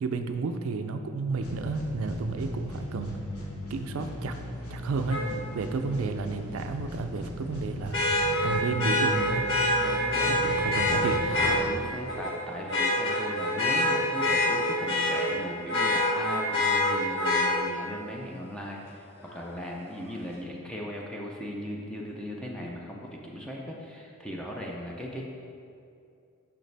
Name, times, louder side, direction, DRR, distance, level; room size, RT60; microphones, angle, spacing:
voice 1, 0.0-3.2 3.7-4.3 4.7-5.2 5.5-8.0 8.4-9.5 10.3-11.2, right 4 dB, 65° right, 7 dB, 0.4 m, -31 dB
sound 1, 1.4-12.3, left 1 dB, 85° left, 1.2 m, -38 dB
Vehicle horn car horn honking, 5.1-5.2 7.9-11.6 12.1-12.3 12.7-15.3 15.7-17.5 19.3-19.4, left 1 dB, 55° left, 1.3 m, -25 dB
voice 2, 9.8-10.5 11.7-25.2, equal, 5° left, -2 dB, 0.5 m, -38 dB
6.5 x 5.7 x 3.3 m, 2.5 s
head